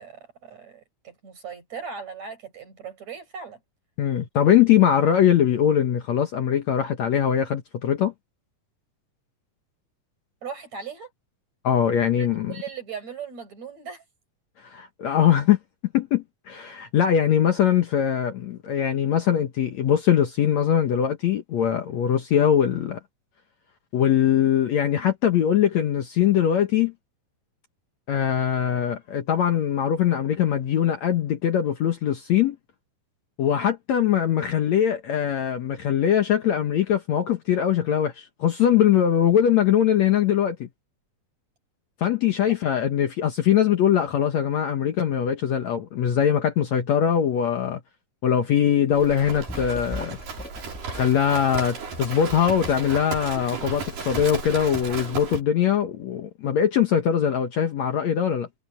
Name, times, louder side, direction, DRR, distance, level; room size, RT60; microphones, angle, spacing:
voice 1, 0.0-3.6 10.4-11.1 12.2-14.0 42.4-42.6, right 6 dB, 50° right, 7.7 m, -38 dB
voice 2, 4.0-8.1 11.6-12.5 14.6-15.6 15.9-23.0 23.9-26.9 28.1-32.6 33.4-40.7 42.0-47.8 48.2-50.2 50.9-58.5, left 9 dB, 60° left, 2.2 m, -22 dB
Livestock farm animals working animals, 48.9-55.4, right 4 dB, 70° right, 6.3 m, -34 dB
sound 1, 49.0-51.1 51.9-53.8 54.1-54.2, equal, 10° left, 0.5 m, -39 dB
omnidirectional pair, 4.1 m